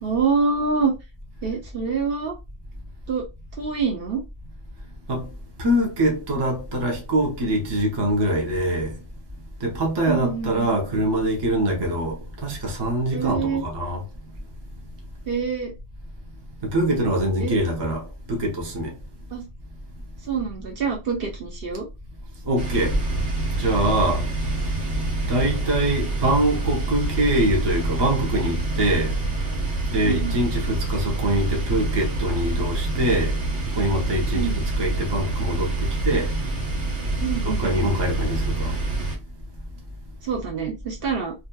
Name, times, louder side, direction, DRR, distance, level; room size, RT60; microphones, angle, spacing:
voice 1, 0.0-0.9 1.4-2.3 3.1-3.2 3.6-4.2 10.1-10.7 13.1-13.6 15.3-15.7 17.4-17.5 19.3-19.4 20.3-21.9 30.0-30.4 34.3-34.7 37.2-37.7 40.2-41.3, right 5 dB, 55° right, 0.9 m, -26 dB
voice 2, 5.6-8.9 9.6-14.0 16.6-19.0 22.4-23.0 23.6-24.2 25.3-29.2 29.9-33.3 33.8-36.3 37.4-38.8, right 1 dB, 25° right, 0.6 m, -24 dB
sound 1, 22.6-39.2, right 2 dB, 85° right, 1.2 m, -26 dB
2.8 x 2.3 x 2.2 m
omnidirectional pair, 1.2 m